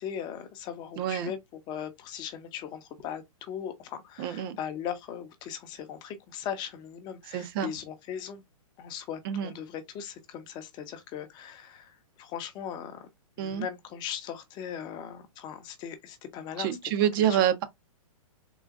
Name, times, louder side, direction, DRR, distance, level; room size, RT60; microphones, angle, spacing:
voice 1, 0.0-8.4 8.8-13.1 13.4-17.4, left 9 dB, 25° left, 0.6 m, -39 dB
voice 2, 1.0-1.3 4.2-4.6 7.3-7.7 9.2-9.5 13.4-13.7 16.6-17.6, right 10 dB, 40° right, 0.6 m, -27 dB
3.8 x 2.4 x 2.4 m
hypercardioid pair, 150°, 18 cm